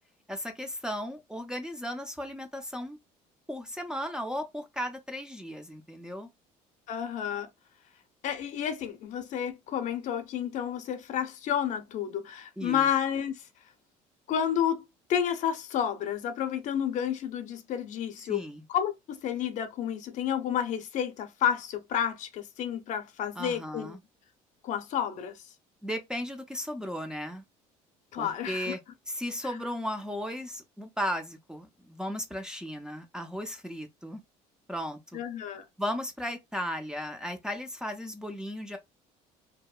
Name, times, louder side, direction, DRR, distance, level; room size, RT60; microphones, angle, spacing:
voice 1, 0.3-3.0 3.5-6.3 12.6-12.9 18.3-18.6 23.4-24.0 25.8-27.4 28.2-28.8 29.1-34.2 34.7-35.2 35.8-38.8, equal, 5° right, 0.5 m, -35 dB
voice 2, 6.9-7.5 8.2-13.5 14.3-14.8 15.1-23.9 24.6-25.5 28.1-28.8 29.4-29.6 35.1-35.7, left 9 dB, 55° left, 0.7 m, -31 dB
2.7 x 2.1 x 2.3 m
supercardioid pair, 100°, 15 cm